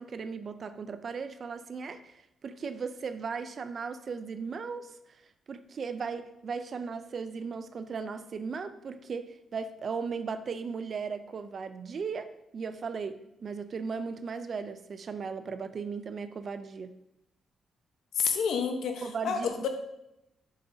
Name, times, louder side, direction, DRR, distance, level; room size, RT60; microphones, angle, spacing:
voice 1, 0.0-5.2 5.5-17.0 19.0-19.7, right 5 dB, 45° right, 11 dB, 0.4 m, -37 dB
voice 2, 18.1-19.7, left 6 dB, 80° left, 6 dB, 0.9 m, -29 dB
6.9 x 6.5 x 2.7 m, 0.86 s
cardioid pair, 135°, 0 cm